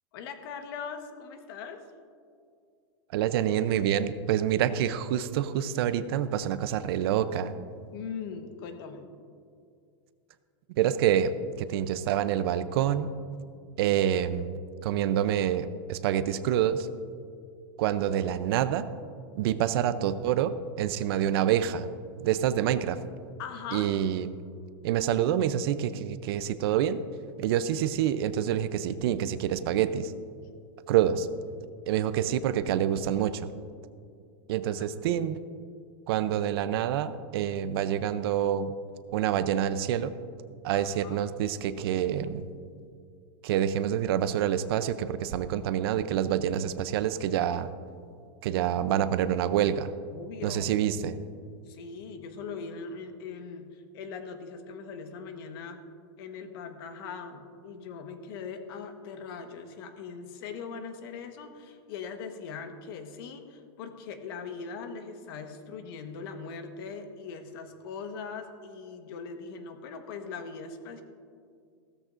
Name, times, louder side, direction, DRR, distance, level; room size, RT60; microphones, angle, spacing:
voice 1, 0.1-1.8 7.9-9.1 23.4-23.9 34.7-35.3 40.7-41.3 50.1-50.7 51.6-55.8 56.2-71.0, left 5 dB, 60° left, 6 dB, 1.3 m, -41 dB
voice 2, 3.1-7.5 10.8-13.1 13.8-16.9 17.8-18.9 19.4-21.9 22.2-23.0 23.7-24.4 24.8-27.0 27.4-30.1 30.9-31.3 31.9-33.5 34.5-35.4 36.1-38.7 39.1-40.1 40.6-42.5 43.4-47.7 48.4-49.9 50.4-51.2, right 10 dB, 65° right, 13 dB, 0.6 m, -27 dB
16.0 x 13.5 x 2.6 m, 2.3 s
supercardioid pair, 155°, 14 cm